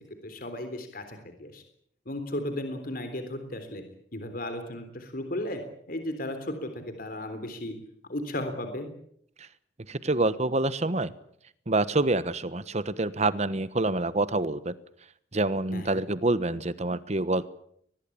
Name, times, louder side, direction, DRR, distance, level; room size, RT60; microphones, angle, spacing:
voice 1, 0.2-1.6 2.1-3.9 4.1-5.6 5.9-7.8 8.1-8.9 15.7-16.0, left 1 dB, 55° left, 8 dB, 3.6 m, -35 dB
voice 2, 9.9-11.1 11.7-14.7 15.3-17.5, right 2 dB, 40° right, 15 dB, 1.2 m, -27 dB
23.0 x 20.5 x 8.7 m, 0.68 s
head